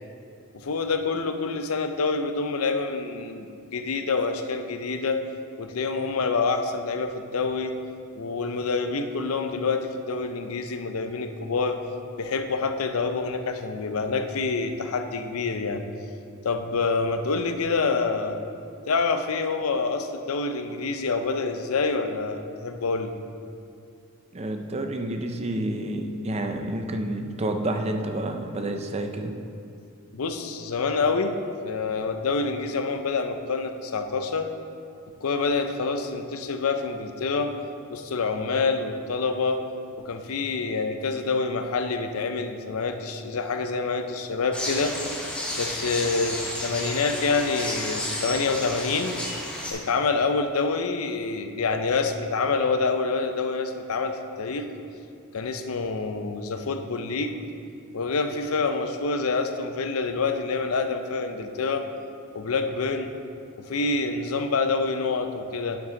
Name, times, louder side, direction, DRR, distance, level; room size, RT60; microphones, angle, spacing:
voice 1, 0.5-5.2 5.6-7.7 8.2-11.8 12.2-15.8 16.4-18.4 18.9-23.1 30.1-31.3 31.6-34.5 35.2-37.5 37.9-39.6 40.0-45.0 45.6-49.2 49.7-54.7 55.3-57.4 57.9-61.9 62.3-63.1 63.6-65.8, left 4 dB, 80° left, 7 dB, 0.6 m, -27 dB
voice 2, 24.3-29.3, right 1 dB, 30° right, 5 dB, 0.5 m, -29 dB
sound 1, 44.5-49.7, left 1 dB, 5° left, 0.9 m, -32 dB
8.8 x 6.0 x 3.8 m, 2.4 s
head